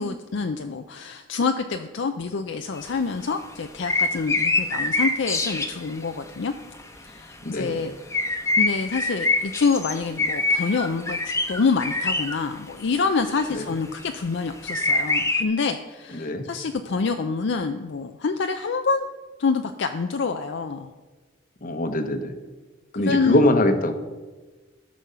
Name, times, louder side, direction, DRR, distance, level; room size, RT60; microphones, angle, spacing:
voice 1, 0.0-6.5 7.0-7.9 8.6-19.1 19.4-20.9 22.9-23.4, left 4 dB, 65° left, 7 dB, 0.5 m, -26 dB
sound 1, 2.8-2.9 3.8-5.9 6.3-6.4 6.7-6.8 8.1-12.4 13.4-13.5 14.0-14.1 14.7-15.4, left 2 dB, 15° left, 1.0 m, -24 dB
voice 2, 7.4-7.8 13.5-13.6 16.1-16.4 21.6-22.4 22.9-23.9, left 1 dB, 45° left, 8 dB, 1.0 m, -22 dB
14.0 x 6.3 x 5.6 m, 1.3 s
head